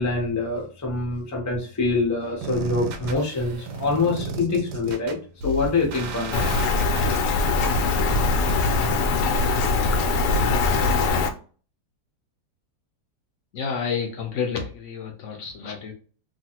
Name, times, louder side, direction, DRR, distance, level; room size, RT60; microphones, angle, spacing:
voice 1, 0.0-5.2 5.4-6.4, left 3 dB, 25° left, -1 dB, 0.3 m, -25 dB
sound 1, 2.4-10.4, right 2 dB, 80° right, 1.2 m, -34 dB
Rain, 6.3-11.3, left 3 dB, 90° left, 1.2 m, -22 dB
voice 2, 13.5-15.9, left 6 dB, 70° left, 2 dB, 0.7 m, -30 dB
3.0 x 2.5 x 2.8 m, 0.40 s
omnidirectional pair, 1.8 m